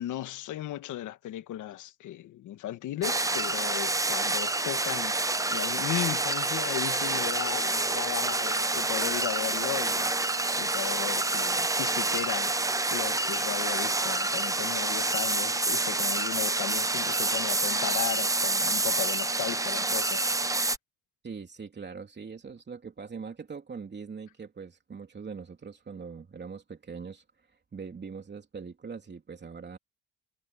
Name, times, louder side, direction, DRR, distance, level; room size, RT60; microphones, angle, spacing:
voice 1, 0.0-5.2 5.5-10.1 10.6-20.3, left 13 dB, 80° left, 1.4 m, -36 dB
sound 1, 3.0-20.8, right 2 dB, 10° right, 0.7 m, -28 dB
voice 2, 21.2-29.8, right 5 dB, 35° right, 3.2 m, -42 dB
cardioid pair, 90°, 30 cm